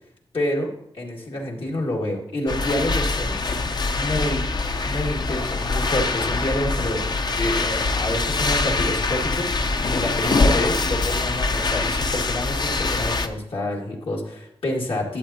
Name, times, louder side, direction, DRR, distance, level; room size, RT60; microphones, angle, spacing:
voice 1, 0.3-3.4 4.0-4.5 4.9-9.5 9.9-15.2, left 1 dB, 75° left, -2 dB, 2.0 m, -28 dB
sound 1, 2.5-13.3, left 3 dB, 50° left, 0.6 m, -24 dB
11.5 x 8.0 x 2.8 m, 0.73 s
wide cardioid pair, 90°, 9 cm